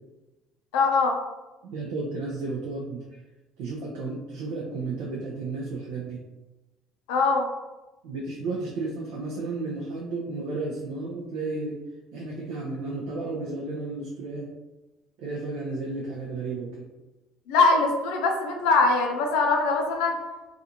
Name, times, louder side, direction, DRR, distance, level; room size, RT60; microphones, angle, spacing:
voice 1, 0.7-1.2 7.1-7.5 17.5-20.2, left 3 dB, 85° left, 2 dB, 0.4 m, -22 dB
voice 2, 1.6-3.2 3.6-6.2 8.0-11.8 12.1-14.5 15.2-16.9, right 3 dB, 80° right, -3 dB, 0.5 m, -33 dB
2.4 x 2.4 x 2.8 m, 1.1 s
supercardioid pair, 85°, 0 cm